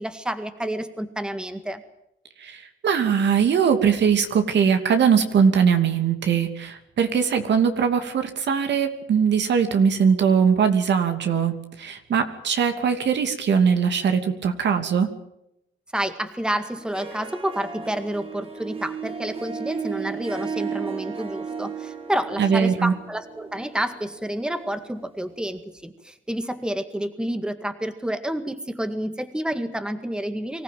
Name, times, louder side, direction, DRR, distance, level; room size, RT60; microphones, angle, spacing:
voice 1, 0.0-1.8 15.9-30.6, right 1 dB, 5° right, 9 dB, 1.9 m, -29 dB
voice 2, 2.4-15.1 22.4-22.9, right 7 dB, 65° right, 7 dB, 2.8 m, -21 dB
Harp, 16.8-25.4, right 6 dB, 30° right, 2.9 m, -35 dB
24.5 x 15.0 x 9.4 m, 0.82 s
cardioid pair, 90°, 20 cm